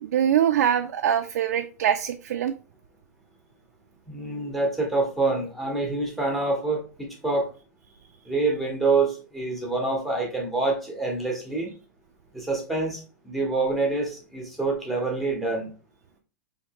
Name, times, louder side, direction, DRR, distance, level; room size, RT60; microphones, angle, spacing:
voice 1, 0.0-2.5, right 9 dB, 85° right, 6 dB, 0.4 m, -23 dB
voice 2, 4.1-7.5 8.2-11.7 12.3-15.7, right 3 dB, ahead, -1 dB, 0.9 m, -26 dB
4.5 x 2.8 x 2.8 m, 0.35 s
supercardioid pair, 165°, 9 cm